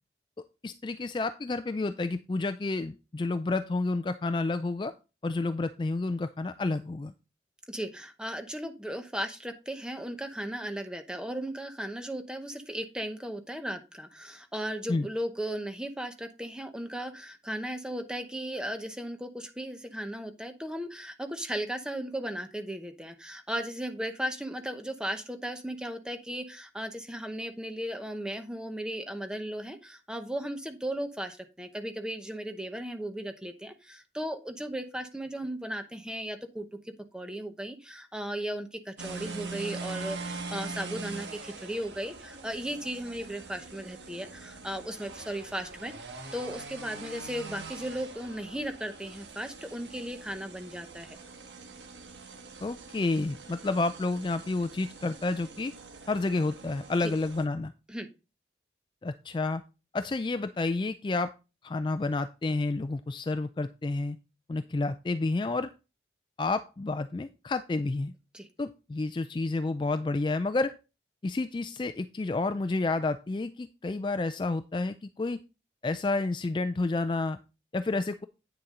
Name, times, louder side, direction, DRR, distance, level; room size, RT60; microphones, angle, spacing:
voice 1, 0.6-4.9 5.2-7.1 14.9-15.1 52.6-55.7 56.1-57.7 59.0-59.6 59.9-61.3 61.6-64.2 64.5-65.7 66.4-68.1 68.6-70.7 71.2-75.4 75.8-77.4 77.7-78.3, left 3 dB, 25° left, 11 dB, 0.3 m, -30 dB
voice 2, 7.7-36.7 37.1-51.2 57.0-57.1 57.9-58.1 68.3-68.5, right 1 dB, 5° right, 7 dB, 0.8 m, -36 dB
sound 1, 39.0-57.4, right 3 dB, 85° right, 1.5 m, -43 dB
9.2 x 6.8 x 3.7 m, 0.30 s
head